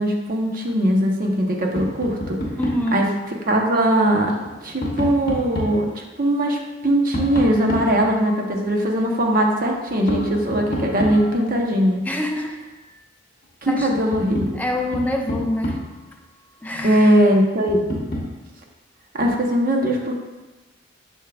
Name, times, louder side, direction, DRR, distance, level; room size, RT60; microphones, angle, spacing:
voice 1, 0.0-2.4 2.9-4.3 4.6-6.6 6.8-12.0 13.6-14.6 16.8-17.8 19.1-20.1, right 1 dB, 45° right, 1 dB, 0.9 m, -20 dB
Tap, 1.8-2.9 4.3-5.8 7.1-8.6 10.1-11.6 13.4-13.5 13.9-16.1 17.7-18.4, left 1 dB, 55° left, 1.0 m, -29 dB
voice 2, 2.6-3.0 12.0-12.6 13.7-13.9 14.5-15.8 16.6-17.2, left 1 dB, 10° left, 2 dB, 0.5 m, -25 dB
6.7 x 6.4 x 2.4 m, 1.1 s
head